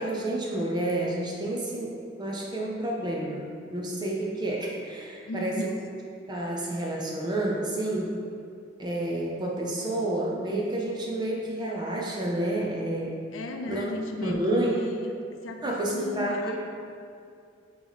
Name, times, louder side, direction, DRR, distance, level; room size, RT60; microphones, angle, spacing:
voice 1, 0.0-1.9 2.2-5.7 6.3-8.1 8.8-13.1 13.7-13.9 14.2-14.7 15.6-16.5, right 1 dB, 20° right, -3 dB, 0.5 m, -29 dB
voice 2, 5.3-5.8 13.3-15.1 15.4-16.5, left 1 dB, 85° left, 4 dB, 0.6 m, -36 dB
7.9 x 3.0 x 4.0 m, 2.4 s
head